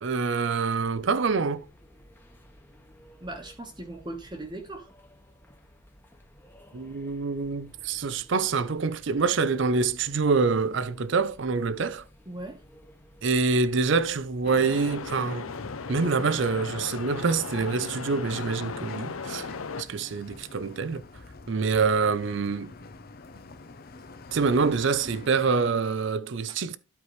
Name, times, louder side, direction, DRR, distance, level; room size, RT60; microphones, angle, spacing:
voice 1, 0.0-1.7 6.7-12.0 13.2-15.5 15.9-19.5 19.8-21.0 21.5-22.7 24.3-26.8, right 4 dB, 60° right, 0.5 m, -26 dB
sound 1, 0.8-15.3, equal, 10° left, 1.1 m, -55 dB
voice 2, 3.2-4.9 12.3-12.6 26.5-26.6, right 2 dB, 20° right, 1.1 m, -39 dB
sound 2, 14.4-19.8, left 4 dB, 85° left, 0.7 m, -36 dB
sound 3, 15.5-25.8, left 3 dB, 45° left, 0.6 m, -47 dB
12.0 x 4.8 x 3.1 m
head